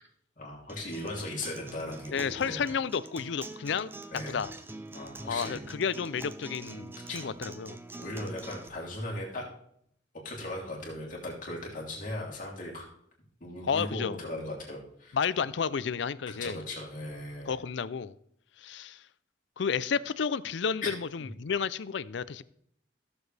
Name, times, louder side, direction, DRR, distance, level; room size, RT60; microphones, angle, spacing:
voice 1, 0.4-2.7 4.1-4.4 4.9-5.6 7.1-7.3 7.9-9.4 10.2-12.9 13.4-15.2 16.3-17.5 20.8-20.9 21.2-21.3, left 1 dB, 40° left, 3.1 m, -38 dB
Acoustic guitar, 0.7-8.7, right 2 dB, 10° right, 0.5 m, -45 dB
voice 2, 2.1-3.9 4.3-4.5 5.3-7.8 13.6-14.2 15.1-16.6 17.5-18.1 18.6-19.0 19.6-22.4, left 6 dB, 65° left, 0.4 m, -31 dB
16.5 x 7.1 x 3.3 m
head